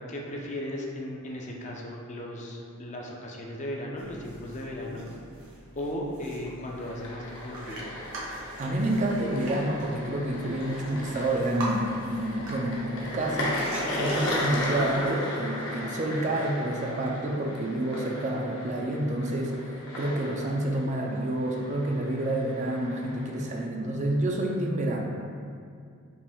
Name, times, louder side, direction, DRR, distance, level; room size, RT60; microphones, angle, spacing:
voice 1, 0.0-5.1 5.8-7.9, left 1 dB, 35° left, -1 dB, 0.5 m, -36 dB
sound 1, 4.0-15.1, right 1 dB, 60° right, 1.1 m, -42 dB
sound 2, 6.7-23.7, left 1 dB, 60° left, 0.8 m, -36 dB
voice 2, 8.6-19.6 20.0-25.1, right 1 dB, 35° right, 0 dB, 0.4 m, -29 dB
5.2 x 2.6 x 3.5 m, 2.2 s
head